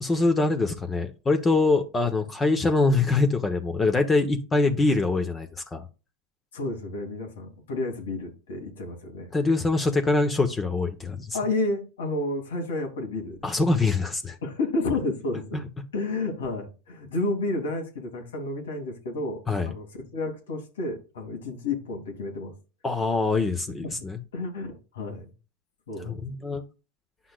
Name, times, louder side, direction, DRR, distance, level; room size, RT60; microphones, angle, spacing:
voice 1, 0.0-5.9 9.3-11.4 13.4-14.4 15.5-15.6 19.5-19.7 22.8-24.2 26.0-26.6, left 3 dB, 20° left, 1.0 m, -24 dB
voice 2, 6.5-9.3 11.3-13.4 14.4-15.6 15.9-22.5 23.8-25.3 25.9-26.2, left 2 dB, 85° left, 2.8 m, -31 dB
10.0 x 5.7 x 2.4 m
hypercardioid pair, 105°, 0 cm